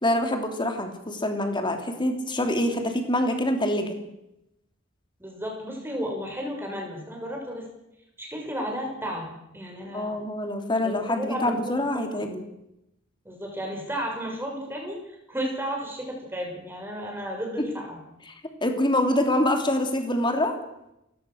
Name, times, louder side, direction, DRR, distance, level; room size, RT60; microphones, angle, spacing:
voice 1, 0.0-4.0 9.9-12.4 17.6-17.7 18.3-18.4 18.6-20.5, left 1 dB, 25° left, 5 dB, 3.2 m, -25 dB
voice 2, 5.2-7.7 8.2-10.2 10.8-11.8 13.2-18.0, equal, 10° right, 0 dB, 6.8 m, -33 dB
29.0 x 16.5 x 6.6 m, 0.85 s
head